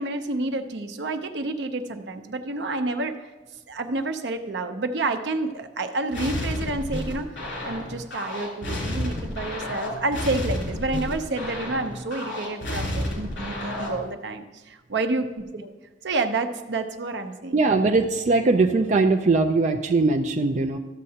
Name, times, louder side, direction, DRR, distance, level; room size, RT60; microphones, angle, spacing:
voice 1, 0.0-3.3 3.7-7.3 7.6-15.7 16.0-17.7, right 2 dB, 75° right, 7 dB, 0.7 m, -29 dB
sound 1, 6.1-14.1, left 1 dB, 80° left, 3.1 m, -31 dB
voice 2, 17.5-20.8, right 3 dB, 40° right, 4 dB, 0.4 m, -20 dB
13.0 x 7.5 x 2.8 m, 1.2 s
head